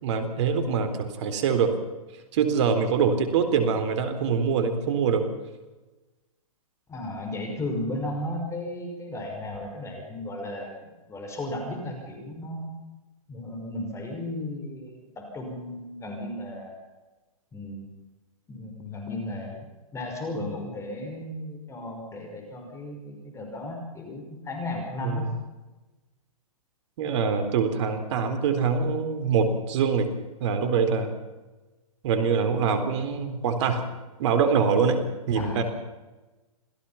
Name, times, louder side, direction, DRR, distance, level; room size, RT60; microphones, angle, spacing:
voice 1, 0.0-1.7 2.3-5.3 25.0-25.3 27.0-30.1 30.4-31.1 32.0-33.8 34.2-35.0 35.3-35.6, right 6 dB, 50° right, 8 dB, 3.9 m, -24 dB
voice 2, 6.9-12.7 13.3-16.7 17.5-17.9 18.5-19.6 19.9-25.3 35.3-35.6, left 1 dB, 15° left, 2 dB, 5.7 m, -35 dB
27.0 x 16.5 x 5.9 m, 1.2 s
hypercardioid pair, 125°, 19 cm